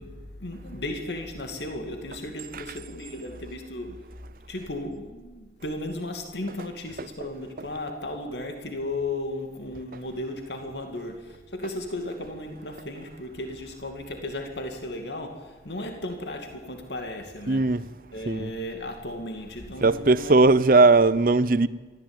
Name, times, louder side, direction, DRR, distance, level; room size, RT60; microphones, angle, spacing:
voice 1, 0.0-4.0 4.5-17.7 18.1-20.6, left 1 dB, 75° left, 2.5 m, -35 dB
voice 2, 17.5-17.8 18.3-18.5 19.8-21.7, right 3 dB, 50° right, 0.7 m, -19 dB
24.0 x 15.5 x 9.0 m
head